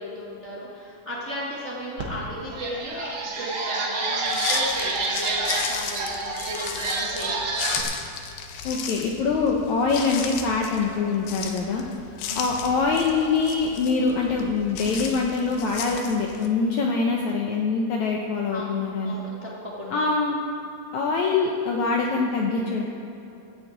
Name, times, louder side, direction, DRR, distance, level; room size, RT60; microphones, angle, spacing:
voice 1, 0.0-7.4 11.7-11.9 12.3-12.6 16.6-16.9 18.5-18.6 19.0-19.5 19.8-20.0, left 1 dB, 30° right, -6 dB, 1.4 m, -36 dB
sound 1, 2.0-2.1 2.5-7.8, right 3 dB, 55° right, 1.4 m, -28 dB
sound 2, 4.3-16.5, left 7 dB, 90° left, 2.7 m, -35 dB
voice 2, 8.6-11.8 12.4-19.2 19.9-20.4 20.9-22.8, left 4 dB, 70° left, 0 dB, 1.8 m, -24 dB
13.5 x 6.3 x 8.6 m, 2.9 s
omnidirectional pair, 4.2 m